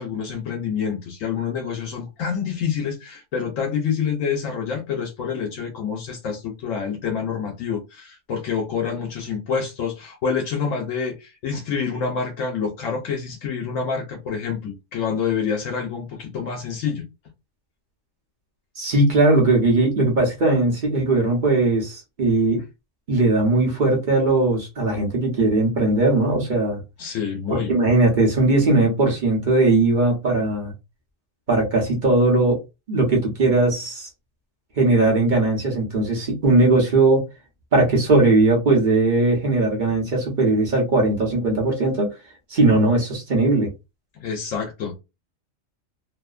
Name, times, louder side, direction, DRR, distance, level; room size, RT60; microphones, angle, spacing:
voice 1, 0.0-17.0 27.0-27.7 44.2-45.0, left 6 dB, 75° left, 1.0 m, -27 dB
voice 2, 18.8-22.6 23.1-26.8 27.5-30.7 31.5-32.6 32.9-34.1 34.8-37.2 37.7-42.1 42.5-43.7, right 2 dB, 40° right, 0.9 m, -19 dB
2.7 x 2.1 x 2.3 m
omnidirectional pair, 1.4 m